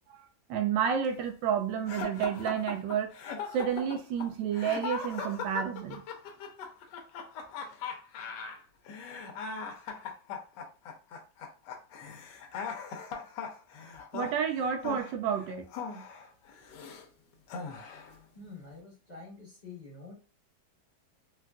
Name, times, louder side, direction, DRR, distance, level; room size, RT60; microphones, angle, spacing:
voice 1, 0.5-3.1 3.5-6.0 14.1-15.7, right 8 dB, 80° right, 1.3 m, -30 dB
sound 1, 1.9-17.0 17.5-18.2, left 6 dB, 75° left, 1.2 m, -40 dB
voice 2, 18.3-20.1, left 3 dB, 25° left, 1.2 m, -47 dB
3.9 x 2.4 x 2.2 m
omnidirectional pair, 2.0 m